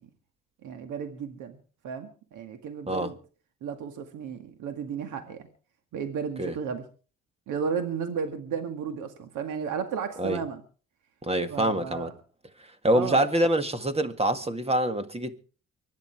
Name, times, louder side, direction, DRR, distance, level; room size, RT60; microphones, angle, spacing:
voice 1, 0.6-1.6 1.8-3.2 3.6-5.5 5.9-6.8 7.5-10.6 11.5-12.1 12.9-13.3, right 6 dB, 85° right, 2.0 m, -33 dB
voice 2, 11.2-12.1 12.8-15.4, right 1 dB, 20° right, 1.9 m, -25 dB
24.5 x 10.5 x 4.6 m
cardioid pair, 90°, 30 cm